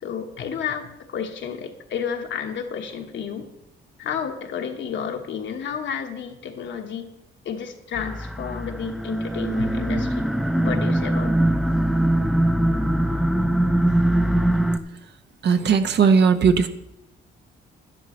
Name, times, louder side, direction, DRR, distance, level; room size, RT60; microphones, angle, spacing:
voice 1, 0.0-3.5 4.0-7.1 7.4-10.3 10.6-11.4, left 7 dB, 70° left, 4 dB, 1.3 m, -31 dB
sound 1, 7.9-14.8, right 1 dB, ahead, 0.6 m, -22 dB
voice 2, 15.4-16.7, right 6 dB, 60° right, 8 dB, 0.9 m, -17 dB
12.0 x 11.0 x 3.2 m, 0.87 s
cardioid pair, 90°, 20 cm